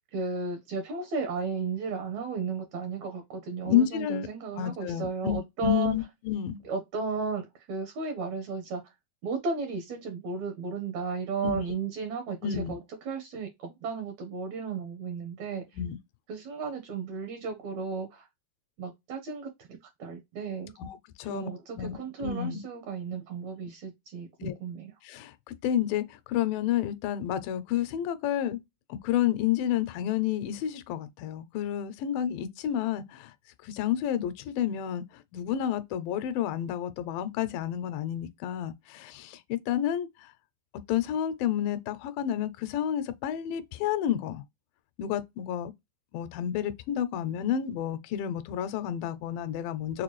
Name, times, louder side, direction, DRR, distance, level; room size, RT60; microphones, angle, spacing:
voice 1, 0.1-5.9 6.6-8.8 9.2-15.6 16.3-18.3 18.8-20.7 21.3-24.9, right 5 dB, 70° right, 1.8 m, -34 dB
voice 2, 3.6-4.3 4.6-6.6 11.4-11.6 12.4-12.8 15.7-16.0 20.8-21.5 21.8-22.6 24.4-24.5 25.0-25.3 25.6-26.0 26.3-28.6 28.9-33.3 33.6-35.0 35.3-40.1 40.9-44.4 45.0-45.7 46.1-50.0, left 10 dB, 80° left, 2.2 m, -30 dB
6.6 x 2.3 x 3.0 m
omnidirectional pair, 4.5 m